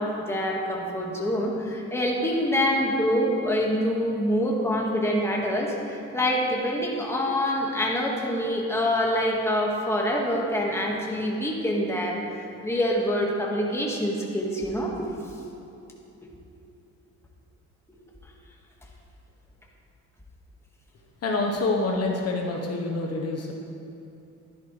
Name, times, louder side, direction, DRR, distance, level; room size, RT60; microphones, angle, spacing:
voice 1, 0.0-12.2 12.6-15.1, equal, 10° left, -2 dB, 1.8 m, -26 dB
voice 2, 21.2-23.5, left 2 dB, 55° left, 0 dB, 1.2 m, -27 dB
11.5 x 10.5 x 3.3 m, 2.8 s
cardioid pair, 90°, 30 cm